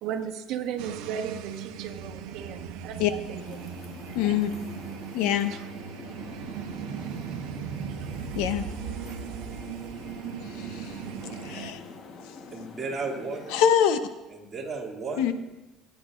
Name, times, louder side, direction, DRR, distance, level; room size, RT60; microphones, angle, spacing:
voice 1, 0.0-3.4 4.1-4.4 5.5-5.7 7.9-8.1 9.1-9.2, right 8 dB, 60° right, 5 dB, 1.2 m, -36 dB
sound 1, 0.8-11.7, right 8 dB, 80° right, 0.9 m, -38 dB
sound 2, 3.2-13.7, left 4 dB, 45° left, 1.2 m, -45 dB
voice 2, 4.1-4.5 5.1-5.5 8.3-8.6 10.5-11.0 11.4-11.8 13.5-14.0 15.2-15.3, left 10 dB, 75° left, 10 dB, 0.8 m, -24 dB
voice 3, 12.5-13.6 14.3-15.3, right 3 dB, 20° right, -3 dB, 2.4 m, -34 dB
21.5 x 9.6 x 2.5 m, 1.0 s
cardioid pair, 135°, 0 cm